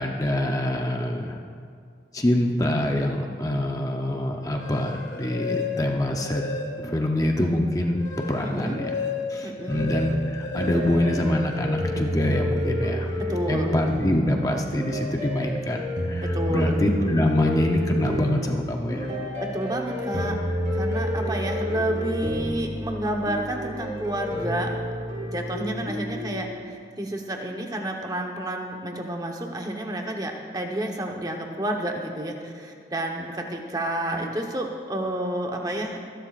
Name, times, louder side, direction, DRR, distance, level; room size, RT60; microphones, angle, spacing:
voice 1, 0.0-1.4 2.1-6.4 6.8-8.9 9.3-13.1 13.5-19.1, left 1 dB, 20° left, 2 dB, 0.7 m, -25 dB
sound 1, 4.4-7.1 7.5-11.9, left 4 dB, 90° left, 1.4 m, -34 dB
voice 2, 8.4-8.8 9.4-9.8 13.2-13.8 16.3-16.8 19.4-20.4 20.7-24.7 25.2-36.0, right 1 dB, 20° right, 1 dB, 1.1 m, -30 dB
sound 2, 9.7-26.4, equal, 45° right, 3.6 m, -30 dB
25.5 x 11.5 x 2.5 m, 2.2 s
head